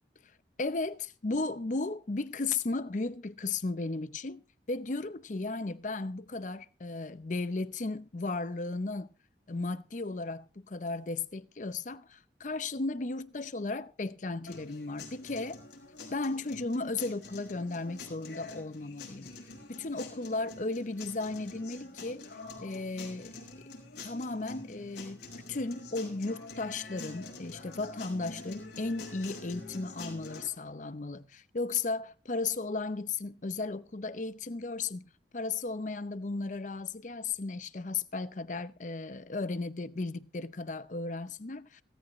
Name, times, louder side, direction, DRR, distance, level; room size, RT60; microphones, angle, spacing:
voice 1, 0.6-0.9 1.2-4.4 4.7-9.1 9.5-15.6 16.1-19.3 19.7-22.3 22.6-23.3 24.0-25.2 25.5-41.8, left 3 dB, 45° left, 0.7 m, -35 dB
sound 1, 14.5-30.5, left 3 dB, 75° left, 5.1 m, -46 dB
17.0 x 14.5 x 3.1 m
head